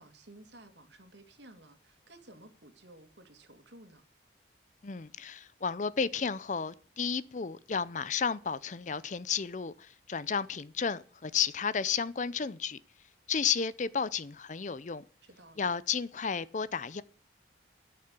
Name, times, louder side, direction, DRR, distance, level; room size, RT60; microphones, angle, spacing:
voice 1, 0.0-4.0 15.2-15.7, right 1 dB, 70° right, 2.2 m, -55 dB
voice 2, 4.8-12.8 13.3-15.0 15.6-17.0, left 6 dB, 40° left, 0.5 m, -32 dB
12.0 x 6.7 x 8.1 m
head